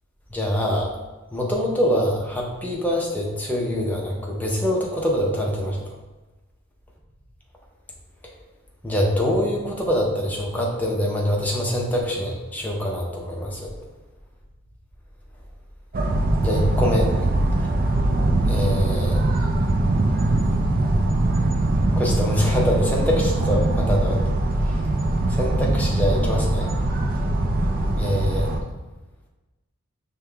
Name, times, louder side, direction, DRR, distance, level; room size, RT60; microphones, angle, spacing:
voice 1, 0.3-0.9 1.3-5.8 8.8-13.7 16.4-17.1 18.5-19.2 22.0-24.2 24.6-24.8 25.3-26.7 28.0-28.5, equal, 5° left, -2 dB, 0.6 m, -24 dB
sound 1, 15.9-28.6, right 2 dB, 40° right, 0.4 m, -22 dB
5.4 x 2.2 x 3.3 m, 1.1 s
head